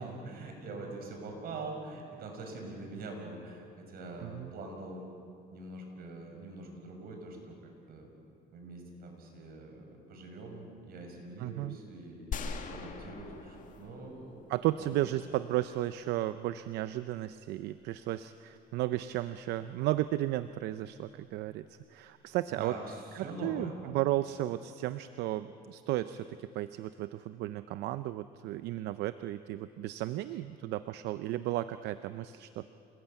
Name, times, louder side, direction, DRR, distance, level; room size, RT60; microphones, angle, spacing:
voice 1, 0.0-5.1 5.5-8.1 8.5-14.5 14.8-14.9 22.5-23.8, right 2 dB, 65° right, 3 dB, 6.2 m, -44 dB
voice 2, 11.4-11.8 14.5-21.7 21.9-22.7 23.2-32.7, right 15 dB, 85° right, 12 dB, 0.6 m, -34 dB
sound 1, 12.3-15.2, left 5 dB, 50° left, 2.2 m, -41 dB
27.5 x 19.5 x 8.9 m, 2.6 s
cardioid pair, 110°, 17 cm